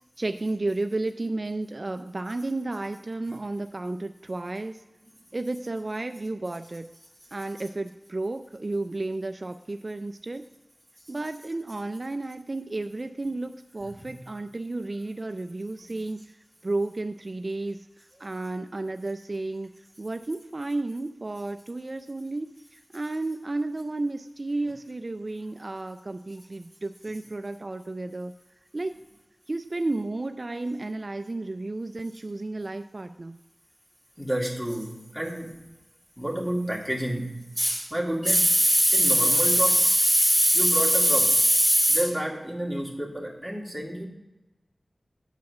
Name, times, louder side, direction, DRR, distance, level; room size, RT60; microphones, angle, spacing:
voice 1, 0.2-4.8 5.3-6.9 7.3-10.4 11.1-16.4 16.6-19.7 20.0-28.3 28.7-29.0 29.5-33.4, right 2 dB, 45° right, 8 dB, 0.3 m, -32 dB
voice 2, 34.2-35.6 36.2-44.1, equal, 10° left, -2 dB, 2.3 m, -23 dB
8.2 x 4.8 x 6.1 m, 1.1 s
wide cardioid pair, 50°, 0 cm